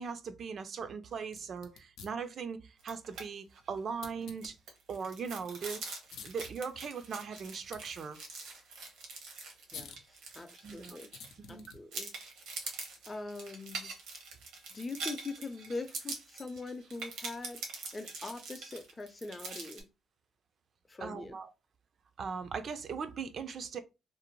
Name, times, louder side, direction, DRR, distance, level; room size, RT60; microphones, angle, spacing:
voice 1, 0.0-4.6 4.9-5.8 6.2-8.2 10.6-11.0 11.5-11.6 21.0-21.5 22.2-23.8, right 5 dB, 55° right, 0.3 m, -39 dB
sound 1, 1.2-19.9, left 6 dB, 85° left, 0.5 m, -57 dB
sound 2, 2.8-3.3 3.6-3.7 4.1-11.5 11.9-19.8, right 3 dB, 90° right, 0.8 m, -44 dB
voice 2, 10.3-11.1 11.5-12.1 13.1-13.9 14.7-17.6 17.9-19.8 20.9-21.4, left 3 dB, 25° left, 0.5 m, -42 dB
2.6 x 2.0 x 2.9 m
cardioid pair, 90°, 0 cm